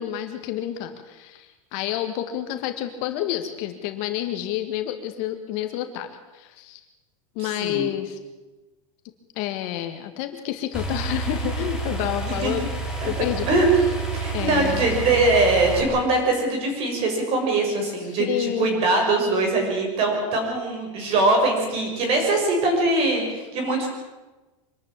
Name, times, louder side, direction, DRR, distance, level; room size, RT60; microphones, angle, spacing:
voice 1, 0.0-6.1 6.3-6.8 7.4-8.2 9.4-12.7 13.1-13.6 14.3-14.8 18.1-18.7, left 12 dB, 45° left, 7 dB, 1.9 m, -29 dB
voice 2, 7.4-7.9 12.3-12.5 13.0-13.1 13.5-13.7 14.1-23.9, right 2 dB, 35° right, 2 dB, 6.6 m, -22 dB
sound 1, 10.7-15.8, right 3 dB, 5° right, 3.9 m, -29 dB
25.5 x 12.5 x 8.9 m, 1.2 s
supercardioid pair, 165°, 17 cm